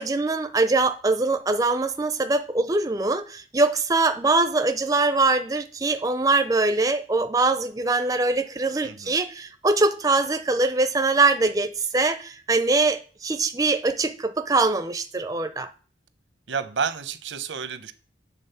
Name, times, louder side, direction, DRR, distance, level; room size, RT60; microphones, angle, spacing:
voice 1, 0.0-15.7, right 3 dB, 20° right, 0.4 m, -23 dB
voice 2, 8.8-9.2 16.5-17.9, right 6 dB, 85° right, 0.8 m, -30 dB
8.5 x 3.8 x 6.8 m
head